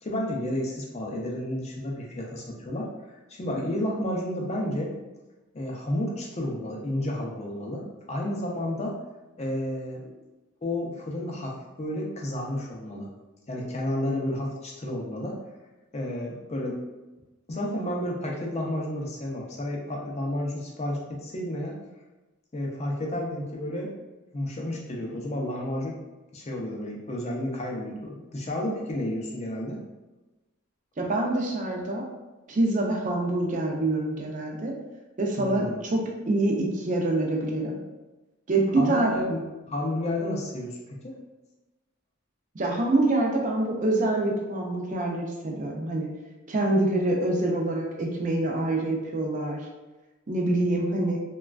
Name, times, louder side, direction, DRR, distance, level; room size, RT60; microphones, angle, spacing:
voice 1, 0.0-4.9 5.5-9.0 9.4-10.2 10.6-13.1 13.5-15.4 15.9-16.8 17.5-21.8 22.5-23.9 24.3-26.0 26.3-29.8 35.4-35.8 38.7-41.2, left 1 dB, 30° left, -1 dB, 0.4 m, -31 dB
voice 2, 31.0-32.0 32.5-34.7 35.2-37.8 38.5-39.1 42.5-46.1 46.5-49.6 50.3-51.2, right 2 dB, 35° right, 0 dB, 0.4 m, -25 dB
3.0 x 2.2 x 2.4 m, 1.1 s
head